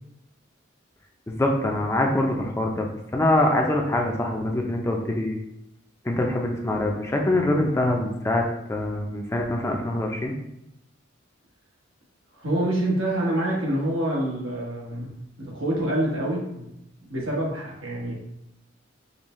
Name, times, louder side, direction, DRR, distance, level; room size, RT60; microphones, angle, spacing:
voice 1, 1.3-2.9 3.1-5.4 6.0-8.4 8.7-10.3, left 1 dB, 15° left, 1 dB, 0.4 m, -24 dB
voice 2, 12.3-16.7 17.1-18.1, right 1 dB, 90° right, -3 dB, 1.3 m, -26 dB
5.3 x 2.2 x 3.0 m, 0.83 s
head